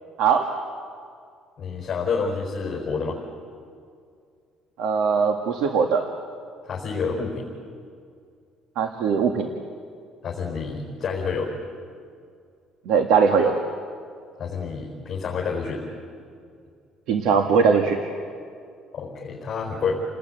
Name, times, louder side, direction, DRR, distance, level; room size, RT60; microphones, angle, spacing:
voice 1, 1.6-3.2 6.7-7.4 10.2-11.5 14.4-15.8 18.9-20.0, left 5 dB, 30° left, -1 dB, 4.5 m, -28 dB
voice 2, 4.8-6.1 8.7-9.5 12.8-13.6 17.1-18.0, right 6 dB, 75° right, 4 dB, 1.7 m, -20 dB
29.5 x 19.5 x 9.1 m, 2.3 s
cardioid pair, 170°, 0 cm